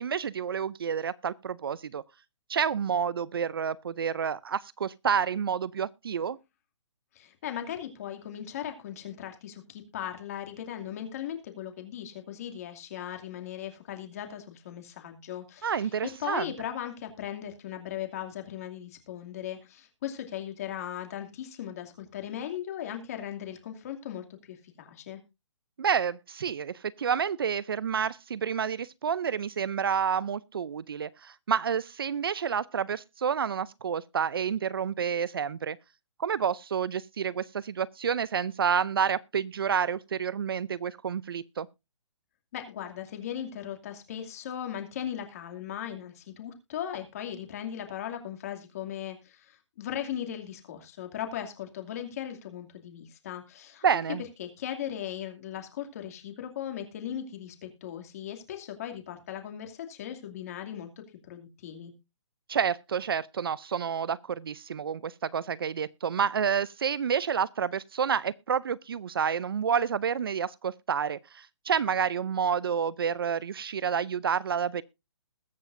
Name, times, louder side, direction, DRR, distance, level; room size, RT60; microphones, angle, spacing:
voice 1, 0.0-2.0 2.5-6.4 15.6-16.5 25.8-35.8 36.2-41.7 53.8-54.2 62.5-74.8, right 7 dB, 50° right, 0.5 m, -29 dB
voice 2, 7.1-25.2 42.5-53.8 54.4-61.9, left 10 dB, 30° left, 2.5 m, -38 dB
21.0 x 7.5 x 2.6 m
hypercardioid pair, 175°, 15 cm